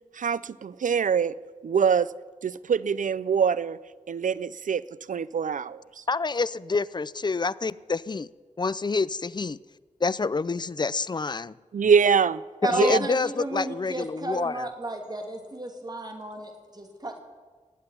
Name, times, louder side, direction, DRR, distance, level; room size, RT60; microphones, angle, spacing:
voice 1, 0.1-1.3 1.6-2.1 2.4-3.8 4.1-4.8 5.1-6.0 11.7-12.4 12.7-13.0, right 6 dB, 75° right, 18 dB, 0.5 m, -24 dB
voice 2, 6.1-8.3 8.6-9.6 10.0-11.5 12.7-14.7, left 4 dB, 35° left, 19 dB, 0.4 m, -27 dB
voice 3, 12.6-17.2, right 2 dB, 30° right, 3 dB, 2.6 m, -33 dB
17.5 x 8.0 x 9.9 m, 1.4 s
wide cardioid pair, 90°, 13 cm